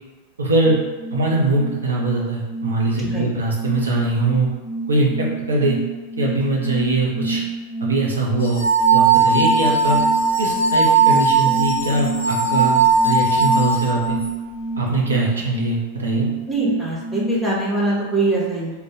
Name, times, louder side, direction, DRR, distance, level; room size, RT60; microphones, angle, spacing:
voice 1, 0.4-0.8 1.1-4.5 4.9-5.8 6.2-7.4 7.8-8.6 8.9-10.0 10.4-14.2 14.8-16.3, right 2 dB, 70° right, -2 dB, 0.9 m, -22 dB
sound 1, 0.6-17.5, right 3 dB, 30° right, 0.7 m, -29 dB
sound 2, 8.4-14.3, right 4 dB, 60° left, 0.8 m, -18 dB
voice 2, 16.5-18.7, right 2 dB, 15° right, -6 dB, 1.1 m, -22 dB
3.7 x 2.6 x 4.5 m, 1.2 s
figure-of-eight pair, 90°, 0 cm